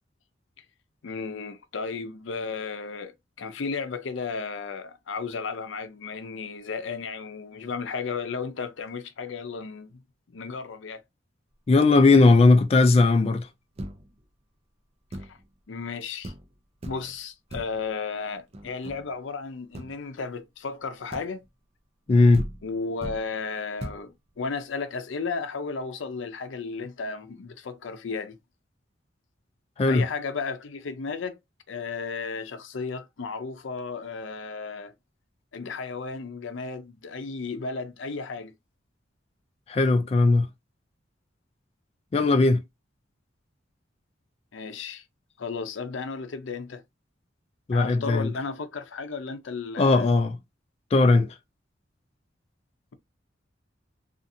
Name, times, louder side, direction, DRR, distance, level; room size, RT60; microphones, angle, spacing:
voice 1, 1.0-3.1 3.4-10.0 10.3-11.0 15.3-15.4 15.7-16.3 16.9-21.4 22.6-28.4 29.9-31.4 31.7-34.9 35.5-38.5 44.5-45.0 45.4-46.8 47.7-50.1, left 4 dB, 90° left, 0.5 m, -34 dB
voice 2, 11.7-13.5 22.1-22.5 29.8-30.1 39.7-40.5 42.1-42.6 47.7-48.3 49.8-50.4 50.9-51.3, left 3 dB, 35° left, 0.3 m, -18 dB
sound 1, 13.8-14.3 15.1-15.5 15.9-16.0 16.2-16.5 16.8-17.2 17.5-17.9 18.5-19.2 19.7-20.0 21.1-21.5 22.1-22.2 22.3-23.3 23.8-24.1, right 1 dB, 35° right, 0.5 m, -38 dB
2.6 x 2.4 x 2.6 m
head